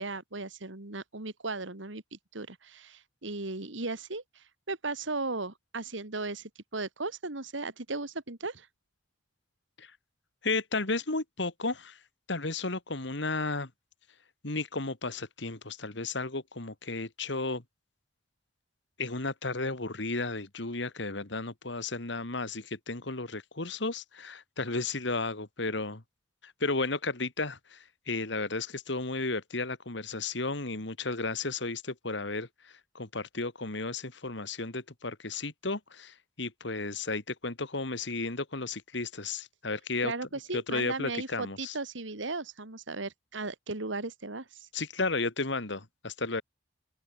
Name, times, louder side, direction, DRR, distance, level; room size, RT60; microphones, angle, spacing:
voice 1, 0.0-2.0 2.3-8.7 40.0-44.7, right 3 dB, 75° right, 2.3 m, -36 dB
voice 2, 10.4-12.0 12.3-13.7 14.4-17.6 19.0-26.0 26.4-40.1 40.5-41.8 44.7-46.4, left 3 dB, 65° left, 2.3 m, -33 dB
open air
head